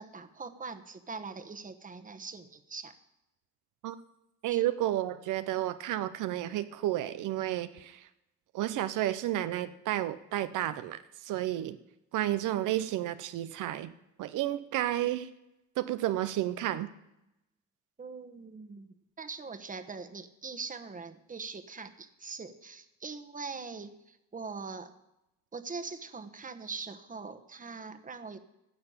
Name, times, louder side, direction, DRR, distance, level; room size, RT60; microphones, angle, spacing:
voice 1, 0.0-2.9 4.5-4.6 18.0-24.9 25.5-28.4, right 4 dB, 25° right, 8 dB, 1.2 m, -42 dB
voice 2, 4.4-8.1 8.5-11.8 12.1-13.9 14.2-15.3 15.8-16.9, right 14 dB, 85° right, 12 dB, 0.7 m, -31 dB
15.5 x 5.8 x 8.7 m, 0.89 s
cardioid pair, 90°, 30 cm